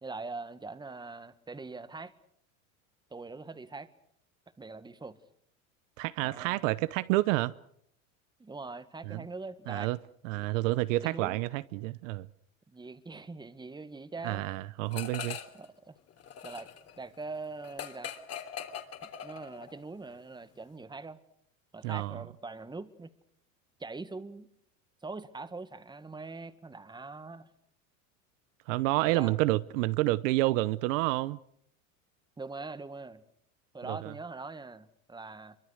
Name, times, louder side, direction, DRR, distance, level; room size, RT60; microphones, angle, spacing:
voice 1, 0.0-2.1 3.1-3.9 4.6-5.2 6.2-6.6 8.4-9.9 10.4-10.5 11.0-11.4 12.7-14.4 15.6-16.0 16.4-16.7 17.0-18.1 19.0-21.2 21.7-23.1 23.8-24.5 25.0-27.5 29.1-29.4 32.4-33.2 33.7-35.6, right 3 dB, 10° right, 1.9 m, -42 dB
voice 2, 6.0-7.5 9.1-9.2 9.7-10.0 10.2-12.3 14.2-15.4 21.8-22.2 28.7-31.4 33.9-34.1, right 19 dB, 65° right, 1.0 m, -29 dB
sound 1, 14.9-15.7 16.0-19.8, left 8 dB, 35° left, 3.3 m, -41 dB
26.0 x 24.0 x 6.6 m
hypercardioid pair, 105°, 40 cm